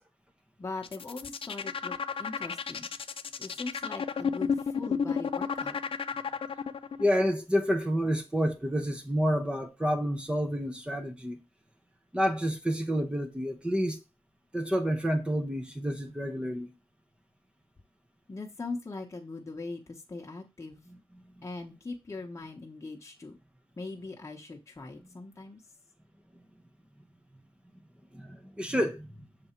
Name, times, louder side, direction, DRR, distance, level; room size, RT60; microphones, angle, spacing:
voice 1, 0.6-2.9 3.4-5.8 18.3-20.8 21.4-23.4 23.8-25.6, left 3 dB, 30° left, 0.9 m, -41 dB
sound 1, 0.8-7.0, left 6 dB, 60° left, 0.4 m, -32 dB
voice 2, 7.0-11.4 12.1-14.0 14.5-16.7 20.9-21.0 28.1-29.3, equal, 10° right, 0.7 m, -29 dB
6.8 x 3.5 x 4.4 m
wide cardioid pair, 125°, 10 cm